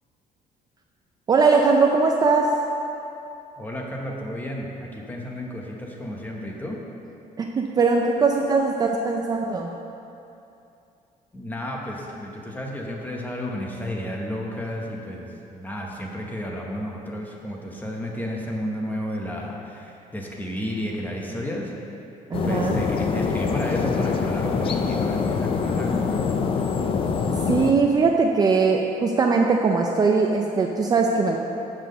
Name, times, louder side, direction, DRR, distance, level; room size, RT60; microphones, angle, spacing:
voice 1, 1.3-2.5 7.4-9.7 22.3-22.8 27.5-31.4, right 4 dB, 25° right, 1 dB, 0.4 m, -20 dB
voice 2, 3.6-6.8 11.3-21.7 22.4-26.1, equal, 10° left, -1 dB, 1.0 m, -32 dB
sound 1, 22.3-27.7, left 5 dB, 40° left, 0.5 m, -24 dB
7.2 x 6.0 x 6.6 m, 2.8 s
cardioid pair, 160°, 15 cm